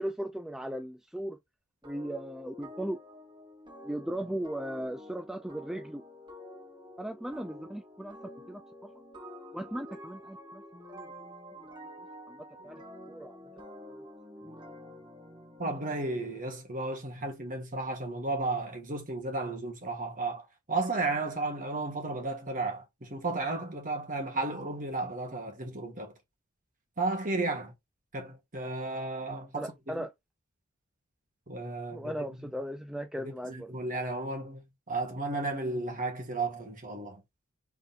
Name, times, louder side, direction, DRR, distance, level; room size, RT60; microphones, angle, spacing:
voice 1, 0.0-1.4 1.8-3.0 3.8-6.0 7.0-8.2 8.5-8.9 9.5-10.6 10.9-11.6 12.3-13.4 29.5-30.1 31.9-33.7, right 1 dB, ahead, 0.3 m, -37 dB
sound 1, 1.8-16.4, left 1 dB, 25° right, 1.6 m, -48 dB
voice 2, 15.6-26.1 27.0-27.7 28.1-30.0 31.5-32.1 33.2-37.2, right 2 dB, 40° right, 1.6 m, -34 dB
3.7 x 3.2 x 4.1 m
head